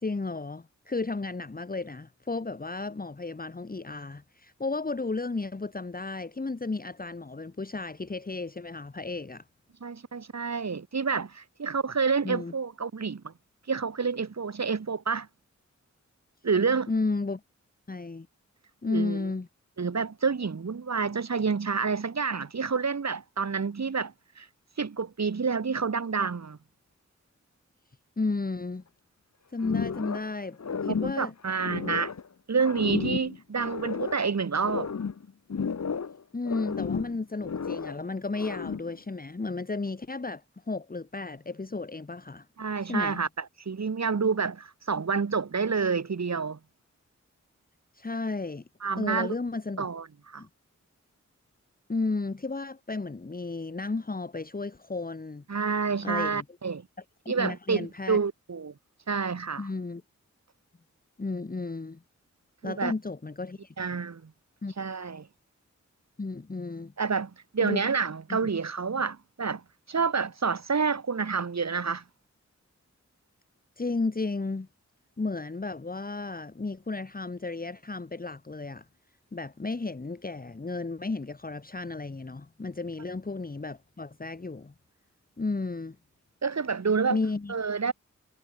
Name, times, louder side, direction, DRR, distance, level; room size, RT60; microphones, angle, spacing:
voice 1, 0.0-9.4 12.2-12.5 16.9-17.4 17.9-18.3 18.8-19.5 28.2-28.8 29.5-31.3 36.3-42.5 42.8-43.2 47.9-48.6 49.0-49.9 50.4-50.5 51.9-55.4 56.0-56.4 57.2-58.2 59.6-60.0 61.2-62.0 62.6-63.7 64.6-64.7 66.2-66.9 67.6-67.9 68.3-68.5 73.8-74.7 75.2-78.9 79.3-84.7 85.4-86.0 87.1-87.5, left 3 dB, 30° left, 1.5 m, -33 dB
voice 2, 9.8-13.3 13.7-15.3 16.4-16.9 18.9-19.2 19.8-24.5 24.8-26.6 31.0-32.1 32.5-34.9 42.6-43.3 43.7-46.6 48.8-49.3 49.8-50.4 55.5-56.9 57.3-58.7 59.1-59.7 62.6-62.9 63.8-64.3 64.8-65.3 67.0-69.6 69.9-72.0 86.4-87.2 87.5-87.9, right 5 dB, 65° right, 2.3 m, -28 dB
sound 1, 29.6-30.3 30.6-32.3 32.6-34.3 34.6-36.2 36.4-38.0 38.3-39.0, left 6 dB, 65° left, 1.6 m, -33 dB
wide cardioid pair, 90°, 29 cm